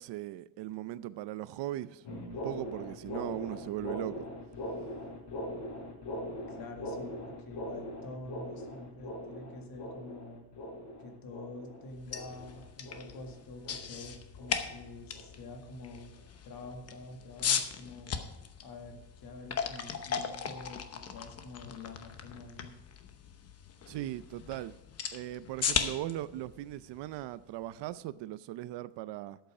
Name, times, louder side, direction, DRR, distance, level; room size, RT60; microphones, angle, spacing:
voice 1, 0.0-4.2 23.9-24.8 25.1-29.4, right 14 dB, 90° right, 0.6 m, -39 dB
sound 1, 2.0-14.8 15.1-15.4 15.9-16.2 16.6-16.8 17.4-17.5 18.1-18.2, left 1 dB, 85° left, 4.1 m, -41 dB
voice 2, 6.5-10.5 11.0-16.1 16.4-18.2 18.6-22.7, left 2 dB, 60° left, 2.0 m, -47 dB
sound 2, 11.9-27.8, left 7 dB, 35° left, 0.9 m, -38 dB
13.0 x 8.1 x 4.9 m
cardioid pair, 165°, 41 cm